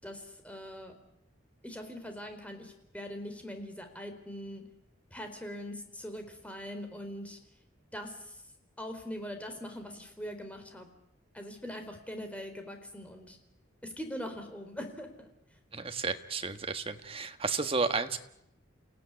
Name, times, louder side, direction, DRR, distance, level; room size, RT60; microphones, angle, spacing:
voice 1, 0.0-0.9 1.6-4.6 5.1-7.4 7.9-8.4 8.8-10.9 11.3-13.4 13.8-15.3, equal, 5° left, 5 dB, 4.1 m, -42 dB
voice 2, 15.7-18.2, right 4 dB, 30° right, 8 dB, 1.5 m, -32 dB
29.0 x 17.0 x 9.9 m, 0.80 s
head